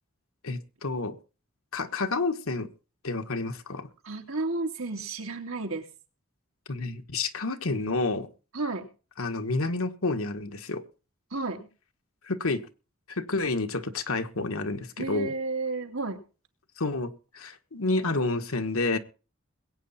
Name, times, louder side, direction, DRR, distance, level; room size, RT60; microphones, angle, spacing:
voice 1, 0.4-1.2 1.7-2.7 3.0-3.9 6.7-8.3 9.2-10.8 12.3-12.6 13.1-15.3 16.8-19.0, left 3 dB, 80° left, 1.5 m, -29 dB
voice 2, 4.0-5.9 8.5-8.9 11.3-11.7 15.0-16.2, right 3 dB, 75° right, 2.8 m, -32 dB
21.5 x 9.0 x 4.2 m
head